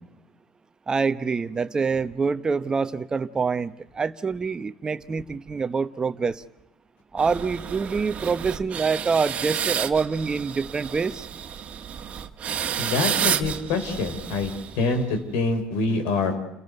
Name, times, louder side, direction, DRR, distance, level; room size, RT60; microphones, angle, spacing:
voice 1, 0.9-6.4 7.1-11.3, right 5 dB, 25° right, 1.0 m, -26 dB
sound 1, 7.2-15.2, right 8 dB, 45° right, 1.6 m, -31 dB
voice 2, 12.8-16.4, left 3 dB, 80° left, 4.1 m, -25 dB
29.5 x 15.0 x 8.0 m
supercardioid pair, 100°, 3 cm